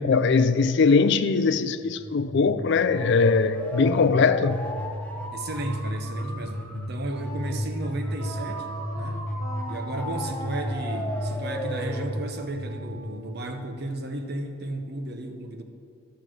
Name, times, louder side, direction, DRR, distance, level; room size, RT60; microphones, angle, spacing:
voice 1, 0.0-4.6, left 4 dB, 55° left, 0.4 m, -21 dB
sound 1, 1.8-13.7, equal, 5° left, 0.9 m, -33 dB
voice 2, 5.3-9.2 9.7-15.6, right 1 dB, 50° right, 0.9 m, -34 dB
Wind instrument woodwind instrument, 7.1-14.0, right 2 dB, 80° right, 1.7 m, -42 dB
12.5 x 6.9 x 6.2 m
head